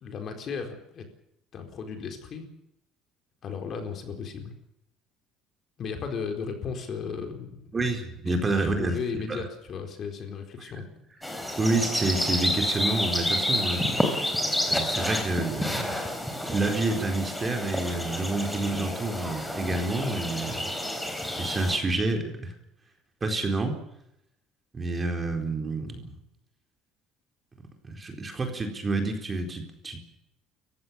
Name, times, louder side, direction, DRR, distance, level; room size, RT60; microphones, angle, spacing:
voice 1, 0.0-1.1 1.5-2.5 3.4-4.5 5.8-7.6 8.2-10.9, left 5 dB, 40° left, 5 dB, 4.3 m, -35 dB
voice 2, 7.7-9.5 10.6-10.7 11.6-13.9 14.7-15.9 16.4-20.6 21.4-22.5 23.2-23.8 24.7-26.1 27.8-30.0, right 2 dB, 20° right, 4 dB, 4.2 m, -28 dB
sound 1, 11.2-21.8, left 1 dB, 5° left, 3.7 m, -29 dB
29.5 x 15.5 x 7.1 m, 0.82 s
cardioid pair, 145°, 0 cm